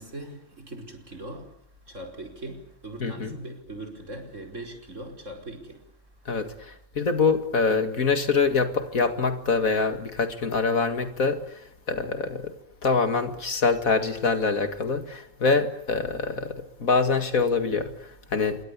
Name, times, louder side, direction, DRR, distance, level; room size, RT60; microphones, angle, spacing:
voice 1, 0.0-1.6 1.9-5.9, right 1 dB, 55° right, 5.4 m, -40 dB
voice 2, 3.0-3.4 6.3-12.5 12.8-18.6, left 4 dB, 70° left, 2.5 m, -25 dB
26.5 x 23.0 x 8.4 m
omnidirectional pair, 1.5 m